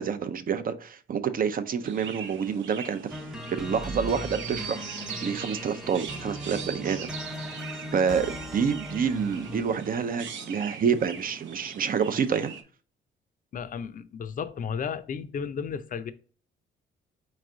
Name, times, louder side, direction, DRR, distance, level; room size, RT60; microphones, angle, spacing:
voice 1, 0.0-3.0 3.5-7.1 7.4-7.6 7.9-12.5, right 6 dB, 45° right, 0.6 m, -28 dB
Chirp tweet, 1.8-12.6, right 7 dB, 75° right, 0.8 m, -41 dB
sound 1, 3.1-9.8, equal, ahead, 0.7 m, -38 dB
voice 2, 13.5-16.1, left 6 dB, 45° left, 0.5 m, -33 dB
4.4 x 3.2 x 3.7 m
cardioid pair, 90°, 20 cm